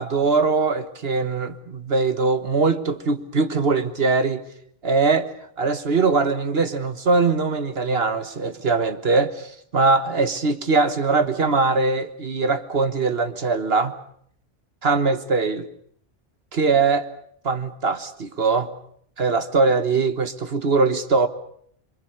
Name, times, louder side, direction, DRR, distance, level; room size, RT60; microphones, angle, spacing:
voice 1, 0.0-4.4 4.8-5.3 5.6-13.9 14.8-15.7 16.5-17.1 17.4-18.7 19.2-21.3, right 4 dB, 55° right, 1.5 m, -21 dB
26.5 x 23.5 x 6.6 m
omnidirectional pair, 1.3 m